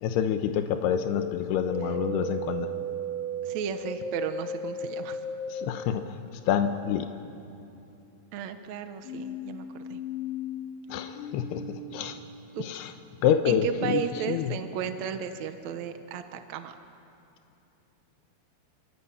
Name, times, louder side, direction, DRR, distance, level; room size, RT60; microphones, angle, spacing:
voice 1, 0.0-2.7 5.5-6.2 6.5-7.1 10.9-12.2 12.6-12.9 13.2-14.0 14.3-14.5, left 9 dB, 80° left, 7 dB, 3.1 m, -27 dB
sound 1, 1.1-5.7 9.0-12.3, equal, 50° left, 3.6 m, -35 dB
voice 2, 3.4-5.2 8.3-10.0 12.5-12.7 13.5-16.8, right 8 dB, 70° right, 7 dB, 1.7 m, -34 dB
28.0 x 25.0 x 8.5 m, 2.8 s
omnidirectional pair, 4.6 m